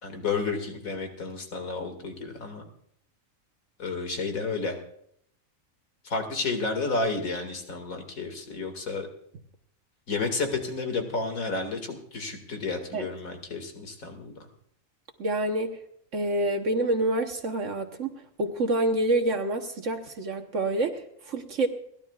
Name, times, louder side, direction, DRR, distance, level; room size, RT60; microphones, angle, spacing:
voice 1, 0.0-2.6 3.8-4.8 6.0-9.1 10.1-14.4, left 3 dB, 85° left, 5 dB, 2.6 m, -31 dB
voice 2, 15.2-15.8 16.1-21.7, right 2 dB, 65° right, 5 dB, 1.4 m, -27 dB
30.0 x 12.0 x 2.4 m, 0.67 s
omnidirectional pair, 1.4 m